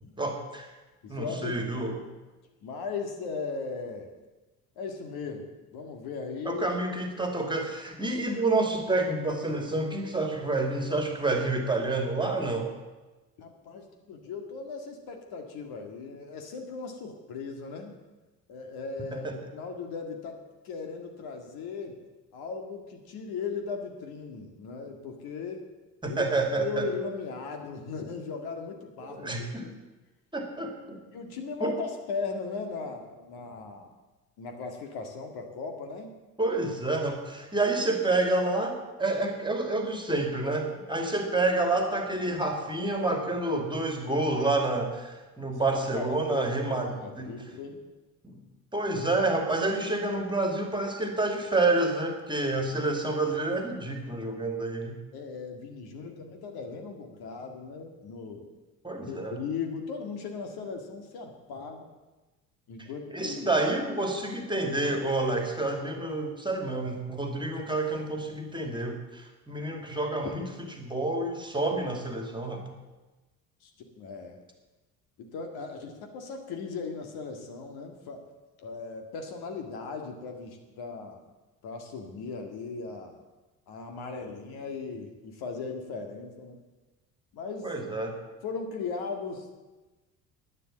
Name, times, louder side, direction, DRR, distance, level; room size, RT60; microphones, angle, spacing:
voice 1, 0.2-0.7 1.1-2.0 6.5-12.7 19.2-19.3 26.0-26.9 29.1-29.7 30.3-31.0 31.6-31.8 36.4-47.3 48.2-48.4 48.7-54.9 58.8-59.4 63.1-70.4 70.8-72.6 87.6-88.1, right 2 dB, 10° right, 3 dB, 2.6 m, -28 dB
voice 2, 1.0-1.9 2.6-4.1 4.8-6.8 13.4-18.0 18.5-20.4 20.6-22.0 22.3-25.6 26.0-26.2 26.6-29.8 31.1-33.9 34.4-36.1 42.3-42.4 45.5-47.8 55.1-58.5 59.0-61.9 62.7-63.6 70.2-70.3 73.6-74.4 75.2-78.2 78.6-81.2 81.6-83.2 83.7-86.6 87.3-87.7 88.4-89.6, left 5 dB, 55° left, 4 dB, 2.1 m, -38 dB
11.5 x 10.0 x 7.6 m, 1.2 s
figure-of-eight pair, 60°, 45 cm